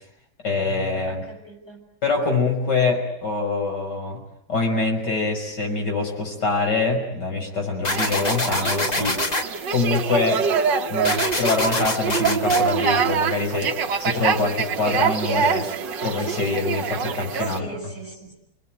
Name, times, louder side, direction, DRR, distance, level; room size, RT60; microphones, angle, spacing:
voice 1, 0.4-1.2 2.0-4.2 4.5-9.2 9.7-10.4 10.9-15.7 16.0-17.9, left 3 dB, 70° left, 2 dB, 6.5 m, -24 dB
voice 2, 1.0-1.8 17.5-18.3, right 1 dB, 40° left, 2 dB, 6.7 m, -39 dB
sound 1, 7.8-9.4 11.0-12.6, left 2 dB, 25° left, 1.6 m, -25 dB
sound 2, 7.9-17.6, right 6 dB, 90° right, 2.0 m, -25 dB
29.5 x 20.0 x 9.2 m, 0.73 s
omnidirectional pair, 1.9 m